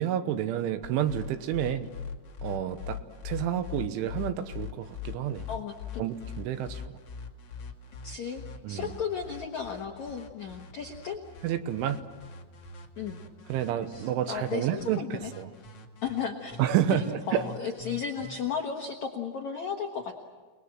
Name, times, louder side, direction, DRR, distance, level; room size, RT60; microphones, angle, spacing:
voice 1, 0.0-1.9 2.4-3.0 3.3-5.4 6.0-6.8 8.6-8.9 11.4-12.0 13.5-15.5 16.6-17.4, right 10 dB, 80° right, 10 dB, 3.4 m, -29 dB
sound 1, 0.8-18.3, left 6 dB, 50° left, 1.8 m, -42 dB
voice 2, 5.5-6.1 8.0-8.4 8.7-11.2 13.0-13.2 13.9-15.3 16.0-16.6 16.9-20.2, left 6 dB, 80° left, 3 dB, 1.6 m, -35 dB
29.5 x 20.5 x 7.5 m, 1.3 s
omnidirectional pair, 5.7 m